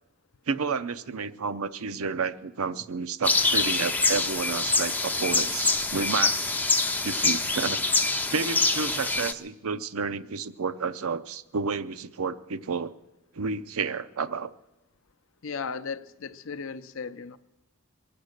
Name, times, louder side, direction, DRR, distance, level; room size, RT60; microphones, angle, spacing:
voice 1, 0.5-6.5 7.0-7.8 8.3-12.9 13.3-14.5, right 5 dB, 80° right, 0.6 m, -31 dB
sound 1, 3.2-9.3, left 3 dB, 10° left, 0.4 m, -25 dB
voice 2, 15.4-17.4, left 5 dB, 70° left, 0.6 m, -36 dB
23.0 x 8.5 x 6.5 m
head